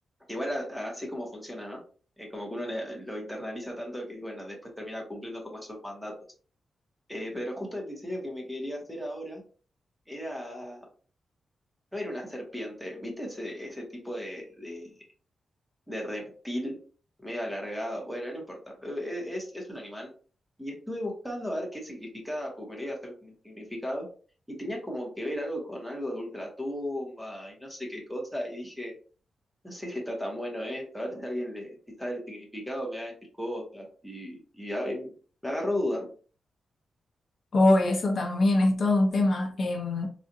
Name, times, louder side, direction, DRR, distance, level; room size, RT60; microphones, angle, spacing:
voice 1, 0.3-1.8 2.2-6.1 7.1-9.4 10.1-10.8 11.9-14.9 15.9-16.8 17.2-20.1 20.6-24.1 24.5-28.9 29.6-35.1 35.4-36.1, equal, ahead, 1.0 m, -35 dB
voice 2, 37.5-40.1, left 2 dB, 45° left, 0.6 m, -23 dB
4.0 x 2.4 x 2.6 m
wide cardioid pair, 150°, 0 cm